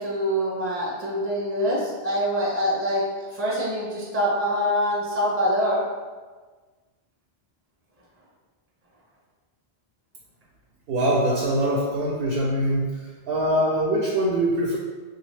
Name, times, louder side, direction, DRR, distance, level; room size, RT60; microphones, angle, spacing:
voice 1, 0.0-5.8, equal, 15° right, -6 dB, 0.5 m, -25 dB
voice 2, 10.9-12.9 13.3-14.8, right 1 dB, 65° right, -3 dB, 0.7 m, -23 dB
3.6 x 2.3 x 3.1 m, 1.4 s
omnidirectional pair, 1.1 m